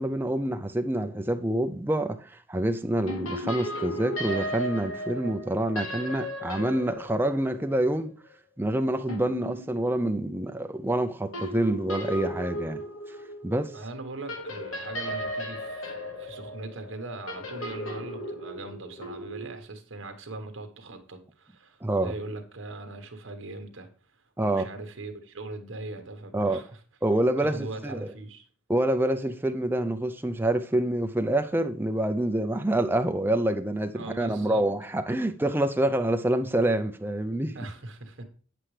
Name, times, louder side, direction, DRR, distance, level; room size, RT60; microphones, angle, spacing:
voice 1, 0.0-8.1 8.6-12.8 13.1-13.2 13.4-13.8 21.8-22.1 24.4-24.7 26.3-26.6 27.0-28.1 28.7-37.6, right 1 dB, 10° right, 0.4 m, -27 dB
sound 1, 3.1-8.3 9.1-10.7 11.3-19.6, equal, 90° left, 1.1 m, -36 dB
voice 2, 13.7-26.7 27.4-28.5 33.9-34.6 37.5-38.2, right 2 dB, 65° right, 1.2 m, -40 dB
8.8 x 7.6 x 3.3 m
head